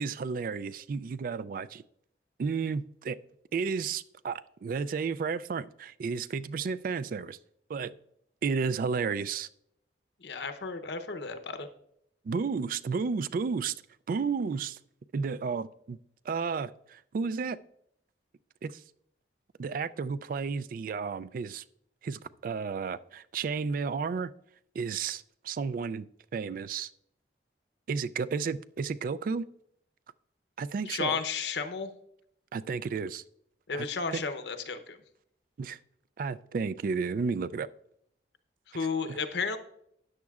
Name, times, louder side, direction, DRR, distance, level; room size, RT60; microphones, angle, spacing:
voice 1, 0.0-1.8 2.4-3.2 3.5-7.4 7.7-7.9 8.4-9.5 12.2-13.7 14.1-14.8 15.1-16.0 16.3-17.6 18.6-18.8 19.6-21.6 22.0-24.3 24.8-26.9 27.9-29.5 30.6-31.2 32.5-33.2 33.7-33.9 34.1-34.2 35.6-35.8 36.2-37.7 39.1-39.2, right 5 dB, 50° right, 0.3 m, -32 dB
voice 2, 10.2-11.7 30.9-31.9 33.7-35.0 38.7-39.6, left 5 dB, 75° left, 0.8 m, -33 dB
13.0 x 9.5 x 2.4 m
head